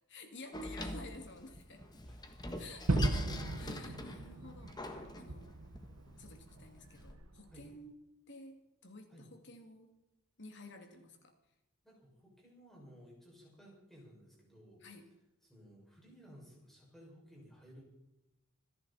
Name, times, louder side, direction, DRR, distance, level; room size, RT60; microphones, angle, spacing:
voice 1, 0.1-1.8 2.6-3.3 3.5-5.5 6.2-8.0 8.3-9.9 10.4-11.3 14.8-15.1, left 2 dB, 55° left, 5 dB, 2.7 m, -52 dB
Door, 0.5-7.1, left 1 dB, 20° left, 1.5 m, -45 dB
voice 2, 2.0-2.4 7.5-7.7 9.1-9.3 11.8-14.8 15.4-17.8, equal, ahead, -4 dB, 6.4 m, -57 dB
Gunshot gunfire / Fireworks / Boom, 2.9-7.7, right 2 dB, 80° right, 1.1 m, -37 dB
26.0 x 10.5 x 4.4 m, 0.89 s
head